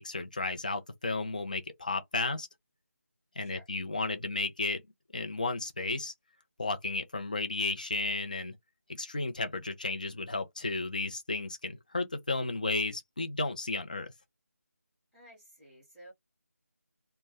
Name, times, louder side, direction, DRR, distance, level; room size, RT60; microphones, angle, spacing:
voice 1, 0.0-2.5 3.4-4.8 5.1-6.1 6.6-8.6 8.9-14.1, left 3 dB, 30° left, 0.5 m, -33 dB
voice 2, 15.1-16.1, equal, ahead, 0.8 m, -54 dB
2.1 x 2.1 x 3.4 m
figure-of-eight pair, 170°, 9 cm